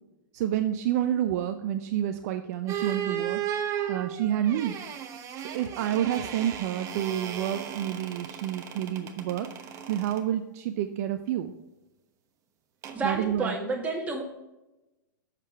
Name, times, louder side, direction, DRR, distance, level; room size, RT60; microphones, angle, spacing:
voice 1, 0.3-3.4 3.9-4.8 5.4-11.5 13.0-13.5, right 11 dB, 50° right, 8 dB, 0.6 m, -29 dB
sound 1, 2.7-10.2 12.8-13.0, right 9 dB, 30° right, 1.0 m, -35 dB
voice 2, 12.9-14.2, right 3 dB, 15° right, 0 dB, 2.0 m, -30 dB
7.5 x 6.7 x 4.6 m, 1.0 s
hypercardioid pair, 120°, 10 cm